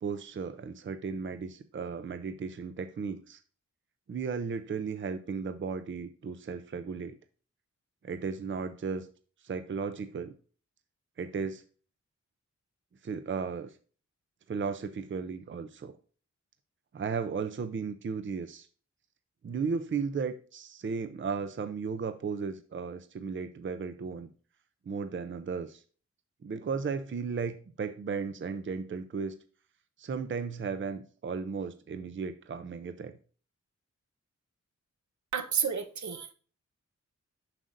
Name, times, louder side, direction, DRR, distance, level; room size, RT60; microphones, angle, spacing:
voice 1, 0.0-3.4 4.1-7.2 8.0-9.1 9.4-10.3 11.2-11.6 13.0-13.7 14.5-15.9 16.9-18.7 19.4-24.3 24.9-25.8 26.4-29.4 30.0-33.1, right 5 dB, 40° right, 0.5 m, -35 dB
voice 2, 35.3-36.3, right 6 dB, 75° right, 0.9 m, -31 dB
7.5 x 6.4 x 2.6 m
wide cardioid pair, 140°, 29 cm